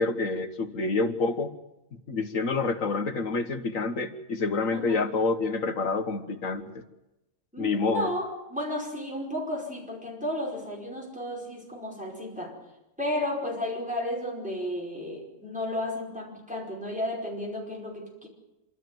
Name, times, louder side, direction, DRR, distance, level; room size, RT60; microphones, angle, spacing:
voice 1, 0.0-1.5 2.1-6.8 7.6-8.1, left 3 dB, 80° left, 8 dB, 1.9 m, -28 dB
voice 2, 7.5-12.6 13.0-18.3, left 1 dB, 5° right, -2 dB, 5.1 m, -33 dB
27.0 x 13.0 x 9.4 m, 0.96 s
omnidirectional pair, 1.4 m